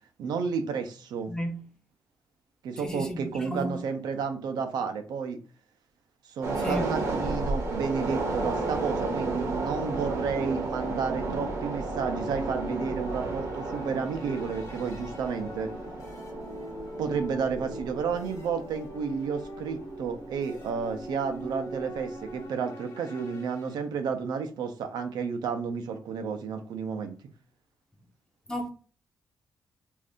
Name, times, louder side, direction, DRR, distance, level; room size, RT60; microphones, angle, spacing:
voice 1, 0.2-1.3 2.6-5.4 6.3-15.7 17.0-27.2, right 6 dB, 85° right, 0.6 m, -31 dB
voice 2, 1.3-1.6 2.8-3.8 6.6-6.9 28.5-28.7, equal, 10° left, 0.5 m, -33 dB
sound 1, 6.4-21.0 21.3-21.5, right 3 dB, 45° right, 0.7 m, -33 dB
sound 2, 6.5-23.8, equal, 45° left, 0.9 m, -41 dB
2.6 x 2.5 x 3.5 m
wide cardioid pair, 180°, 7 cm